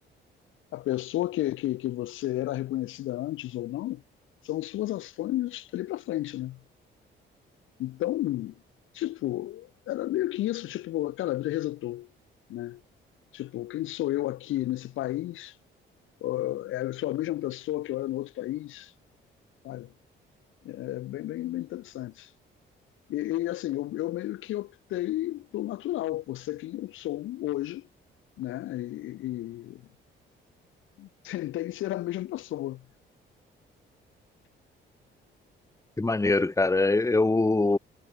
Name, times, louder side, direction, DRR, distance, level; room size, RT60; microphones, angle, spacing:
voice 1, 0.7-4.0 4.5-6.6 7.8-8.5 9.0-12.1 12.5-12.8 13.3-15.5 16.2-18.9 19.6-19.9 20.7-22.1 23.1-27.8 28.4-29.8 31.0-32.8, left 15 dB, 85° left, 1.9 m, -32 dB
voice 2, 36.0-37.8, left 2 dB, 15° left, 1.8 m, -23 dB
cardioid pair, 90°, 20 cm